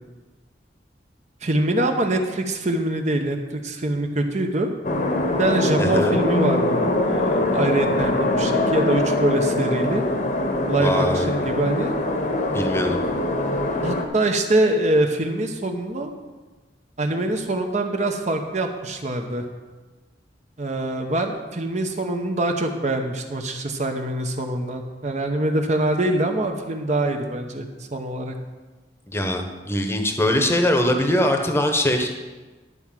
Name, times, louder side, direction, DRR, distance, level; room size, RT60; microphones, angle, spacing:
voice 1, 1.4-4.7 5.4-10.1 10.7-12.0 13.8-16.1 17.0-19.5 20.6-28.4, right 1 dB, 40° right, 4 dB, 0.9 m, -24 dB
sound 1, 4.8-14.0, left 1 dB, 45° left, 1.1 m, -23 dB
voice 2, 5.8-6.2 10.8-11.3 12.5-13.0 29.1-32.1, left 1 dB, 15° left, 4 dB, 1.0 m, -22 dB
11.0 x 4.8 x 7.4 m, 1.3 s
head